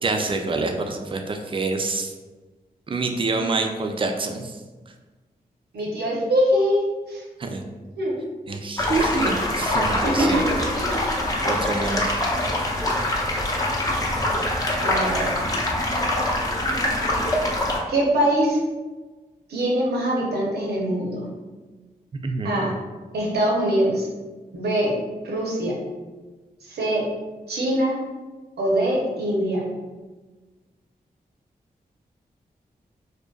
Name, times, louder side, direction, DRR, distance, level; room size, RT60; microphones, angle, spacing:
voice 1, 0.0-2.1 2.9-4.6 7.4-7.6 8.5-10.4 11.4-12.2 22.2-22.6, right 3 dB, 30° right, 4 dB, 0.4 m, -26 dB
voice 2, 5.7-7.2 8.0-8.2 10.0-11.0 14.8-15.3 17.9-18.6 19.5-21.3 22.4-22.7 23.1-24.1 24.5-24.9 25.2-25.8 26.6-27.1 27.5-28.0 28.6-29.6, right 1 dB, 80° right, -2 dB, 0.6 m, -23 dB
sound 1, 8.8-17.8, left 1 dB, 20° left, 0.5 m, -24 dB
2.6 x 2.1 x 2.3 m, 1.3 s
cardioid pair, 45°, 17 cm